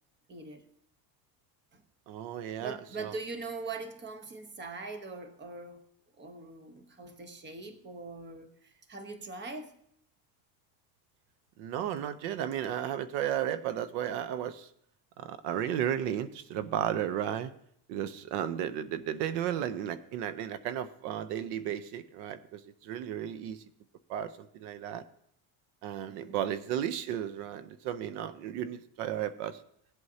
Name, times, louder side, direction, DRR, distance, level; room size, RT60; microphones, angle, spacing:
voice 1, 0.3-0.7 1.7-1.8 2.6-5.9 6.2-9.7 26.1-26.5, right 3 dB, 25° right, 1.1 m, -42 dB
voice 2, 2.1-3.1 11.6-14.7 15.2-17.5 17.9-23.6 24.1-25.0 25.8-29.6, right 10 dB, 85° right, 0.9 m, -34 dB
18.0 x 8.0 x 2.8 m
cardioid pair, 135°, 46 cm